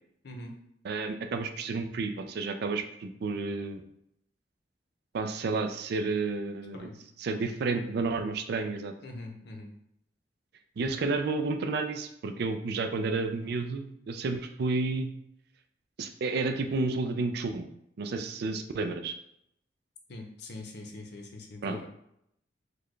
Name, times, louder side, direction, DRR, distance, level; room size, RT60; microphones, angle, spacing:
voice 1, 0.2-0.6 6.7-7.0 9.0-9.7 20.1-21.9, left 2 dB, 65° left, 2 dB, 0.6 m, -43 dB
voice 2, 0.8-3.8 5.1-6.9 7.2-8.9 10.8-15.1 16.0-17.7 18.0-19.1 21.6-21.9, right 3 dB, 60° right, 7 dB, 0.4 m, -31 dB
4.0 x 2.2 x 3.1 m, 0.76 s
head